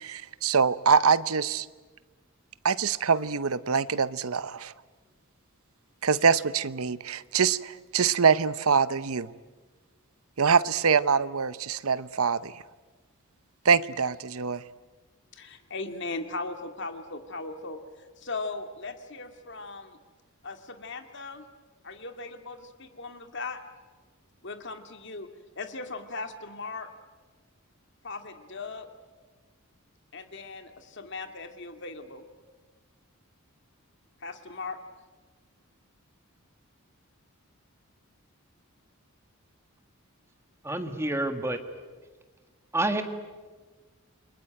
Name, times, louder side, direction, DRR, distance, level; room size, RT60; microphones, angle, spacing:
voice 1, 0.0-1.7 2.6-4.7 6.0-9.3 10.4-12.5 13.6-14.6, right 6 dB, 75° right, 16 dB, 0.8 m, -24 dB
voice 2, 15.3-20.0 20.4-21.5 21.8-23.6 24.4-25.3 25.6-26.9 28.0-28.9 30.1-32.3 34.2-34.8, left 3 dB, 55° left, 7 dB, 2.2 m, -38 dB
voice 3, 40.6-41.6 42.7-43.0, right 2 dB, 10° right, 7 dB, 1.7 m, -28 dB
29.0 x 22.5 x 9.1 m, 1.4 s
head